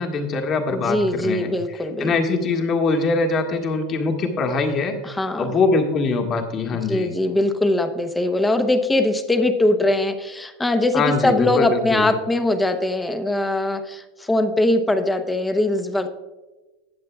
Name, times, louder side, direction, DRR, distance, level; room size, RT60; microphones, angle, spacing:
voice 1, 0.0-7.1 10.9-12.1, left 3 dB, 35° left, 3 dB, 1.7 m, -23 dB
voice 2, 0.7-2.1 5.0-5.5 6.7-16.1, left 1 dB, 10° left, 7 dB, 0.9 m, -21 dB
19.5 x 7.5 x 2.4 m, 1.2 s
supercardioid pair, 140°, 0 cm